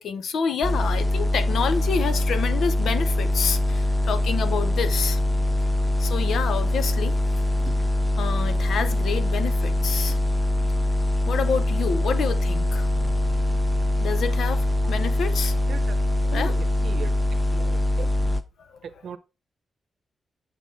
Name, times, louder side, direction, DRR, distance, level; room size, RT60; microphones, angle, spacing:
voice 1, 0.0-5.2 6.0-7.2 8.2-10.2 11.3-12.9 14.0-15.6 16.3-16.5 18.6-18.8, left 6 dB, 80° left, 0.7 m, -28 dB
sound 1, 0.6-18.4, left 1 dB, ahead, 0.6 m, -23 dB
voice 2, 16.3-17.2 17.5-18.1 18.8-19.2, right 7 dB, 70° right, 0.8 m, -38 dB
6.9 x 5.7 x 3.4 m
wide cardioid pair, 145°, 0 cm